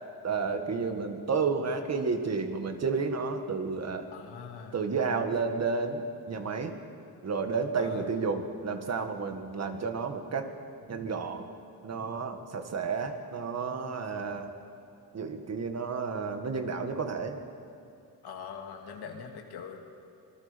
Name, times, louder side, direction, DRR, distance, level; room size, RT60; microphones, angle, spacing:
voice 1, 0.2-4.1 4.7-6.0 6.3-6.7 7.2-10.5 10.9-11.4 11.8-14.5 15.1-17.4, right 5 dB, 40° right, 6 dB, 1.9 m, -31 dB
voice 2, 4.1-4.9 7.8-8.1 18.2-19.8, left 6 dB, 80° left, 3 dB, 2.6 m, -42 dB
25.5 x 20.5 x 5.3 m, 2.5 s
cardioid pair, 110°, 38 cm